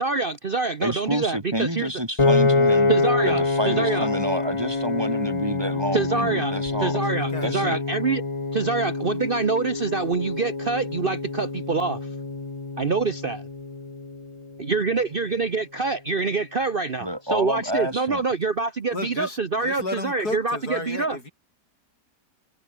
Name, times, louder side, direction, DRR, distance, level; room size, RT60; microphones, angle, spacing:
voice 1, 0.0-1.9 2.9-4.1 5.9-6.5 6.8-8.2 8.5-12.0 12.8-13.5 14.6-21.2, right 4 dB, 40° right, 1.1 m, -25 dB
voice 2, 0.8-2.9 3.2-7.0 7.4-7.8 17.0-18.2, equal, 15° right, 5.0 m, -28 dB
Piano, 2.2-14.4, left 3 dB, 20° left, 1.1 m, -26 dB
voice 3, 7.2-7.5 18.9-21.3, left 2 dB, 70° left, 6.9 m, -33 dB
omnidirectional pair, 1.7 m